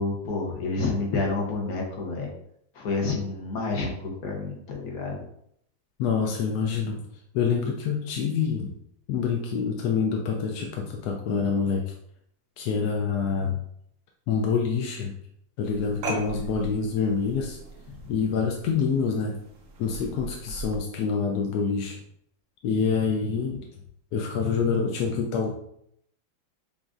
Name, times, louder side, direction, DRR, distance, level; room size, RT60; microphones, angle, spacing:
voice 1, 0.0-2.3 2.7-5.2 18.0-18.1, left 3 dB, 55° left, -1 dB, 1.3 m, -29 dB
voice 2, 6.0-7.0 7.3-8.7 9.1-11.9 12.6-13.6 14.3-15.1 15.6-17.6 18.1-19.4 19.8-22.0 22.6-23.6 24.1-25.5, left 6 dB, 75° left, 1 dB, 0.9 m, -26 dB
sound 1, 15.6-20.8, right 2 dB, 85° right, 0.7 m, -39 dB
6.8 x 2.6 x 2.5 m, 0.71 s
omnidirectional pair, 2.2 m